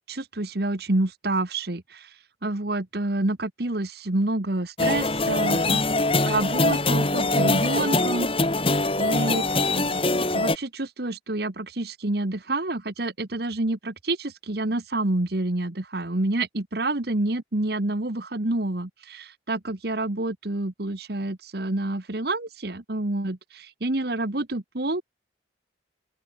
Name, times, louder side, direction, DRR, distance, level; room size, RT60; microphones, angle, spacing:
voice 1, 0.1-2.1 2.4-5.8 6.3-8.3 9.0-9.4 9.8-25.0, right 2 dB, 55° right, 1.4 m, -28 dB
sound 1, 4.8-10.6, left 2 dB, 30° left, 3.2 m, -23 dB
open air
head